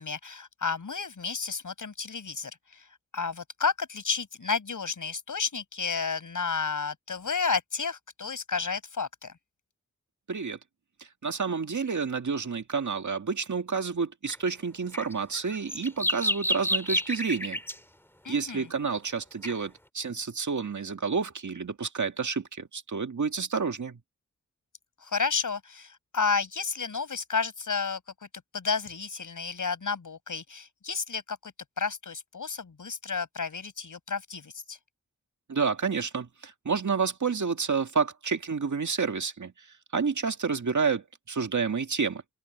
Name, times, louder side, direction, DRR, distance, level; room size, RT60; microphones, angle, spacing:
voice 1, 0.0-2.9 3.1-9.3 18.2-18.7 25.0-28.0 28.5-34.8, left 5 dB, 85° left, 5.5 m, -31 dB
voice 2, 11.2-17.6 18.3-24.0 35.5-39.5 39.9-42.2, right 5 dB, 70° right, 2.0 m, -29 dB
sound 1, 14.3-14.4 14.9-17.8 19.4-19.5, equal, 5° left, 2.2 m, -29 dB
open air
cardioid pair, 40°, 31 cm